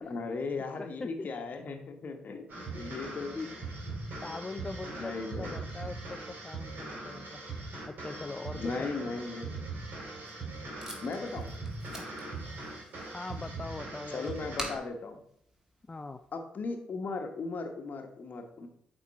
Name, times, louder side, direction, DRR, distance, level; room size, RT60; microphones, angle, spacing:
voice 1, 0.0-3.9 4.5-5.5 8.5-9.5 11.0-11.5 14.1-15.2 16.3-18.7, left 3 dB, 50° left, 5 dB, 1.2 m, -37 dB
voice 2, 0.8-1.5 2.7-2.9 3.3-3.5 3.8-4.0 4.2-7.4 7.8-8.9 12.0-12.1 13.0-14.3 15.9-16.2, left 3 dB, 25° left, 8 dB, 0.4 m, -42 dB
sound 1, 2.5-14.8, right 3 dB, 55° right, 2.8 m, -41 dB
Packing tape duct tape, 9.9-16.4, right 1 dB, 15° right, 1.9 m, -47 dB
8.2 x 3.7 x 4.2 m, 0.71 s
hypercardioid pair, 45°, 4 cm